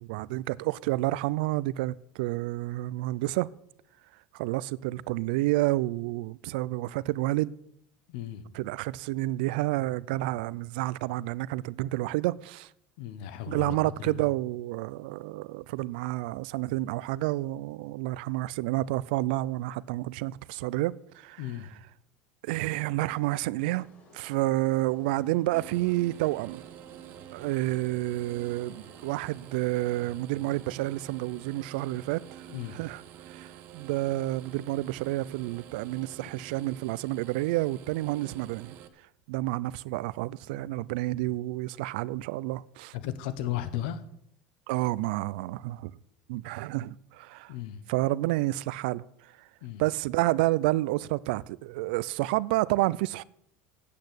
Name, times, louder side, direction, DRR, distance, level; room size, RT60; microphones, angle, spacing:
voice 1, 0.0-3.5 4.3-7.5 8.5-12.7 13.5-21.4 22.4-23.9 24.1-26.6 27.3-32.2 32.7-33.0 33.3-38.8 39.3-42.9 44.7-45.9 46.3-47.5 47.9-49.0 49.8-53.2, right 18 dB, 80° right, 0.4 m, -29 dB
voice 2, 8.1-8.4 13.0-14.2 21.4-21.7 32.5-32.8 36.2-36.3 42.9-44.0 47.5-47.8 49.6-49.8, left 11 dB, 70° left, 1.1 m, -35 dB
sound 1, 23.7-29.7, left 2 dB, 30° left, 2.1 m, -57 dB
sound 2, 25.5-38.9, right 10 dB, 40° right, 0.8 m, -48 dB
8.8 x 8.5 x 8.0 m
cardioid pair, 175°, 5 cm